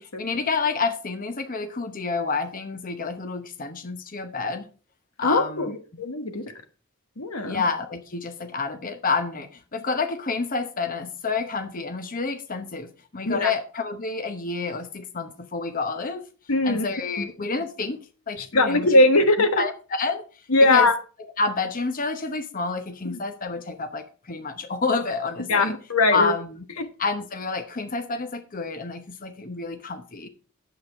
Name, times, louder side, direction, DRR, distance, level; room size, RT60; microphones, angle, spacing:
voice 1, 0.0-4.7 5.2-6.0 7.4-16.2 16.6-18.0 18.3-18.9 19.6-20.2 20.6-20.9 21.4-25.7 26.1-26.6 27.0-30.3, left 4 dB, 40° left, 8 dB, 1.0 m, -29 dB
voice 2, 5.2-6.4 7.2-7.6 13.3-13.5 16.5-16.9 18.5-19.6 20.5-20.9 23.1-23.2 25.5-26.3 26.8-26.9, left 2 dB, 85° left, 8 dB, 1.3 m, -20 dB
9.4 x 7.8 x 4.6 m, 0.37 s
head